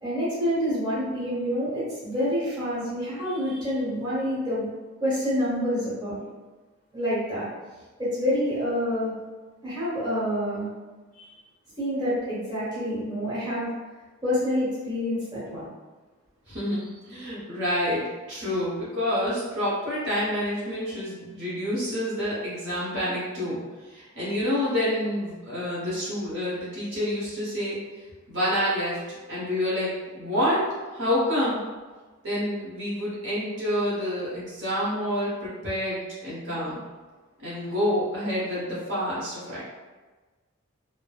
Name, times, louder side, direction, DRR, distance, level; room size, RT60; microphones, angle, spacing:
voice 1, 0.0-4.7 5.0-6.2 6.9-7.4 8.0-9.1 9.6-10.7 11.2-11.3 11.8-13.7 14.2-15.7, equal, 20° right, -10 dB, 0.9 m, -27 dB
voice 2, 16.5-23.6 23.9-27.8 28.3-29.0 29.3-30.6 30.9-31.6 32.2-36.8 37.4-39.6, equal, 55° right, -8 dB, 0.9 m, -28 dB
3.1 x 2.0 x 2.3 m, 1.3 s
head